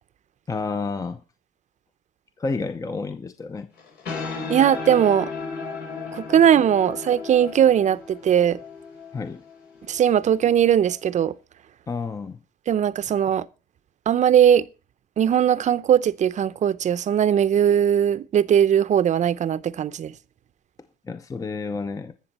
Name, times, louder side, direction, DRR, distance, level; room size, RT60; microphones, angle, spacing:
voice 1, 0.5-1.2 2.4-3.7 9.1-9.4 11.9-12.4 21.0-22.1, left 4 dB, 20° left, 0.7 m, -30 dB
sound 1, 3.8-10.9, left 4 dB, 75° left, 4.4 m, -35 dB
voice 2, 4.5-5.3 6.1-8.6 9.9-11.3 12.7-13.4 14.1-14.6 15.2-20.1, right 9 dB, 45° right, 0.7 m, -19 dB
20.0 x 7.0 x 4.2 m
cardioid pair, 110°, 17 cm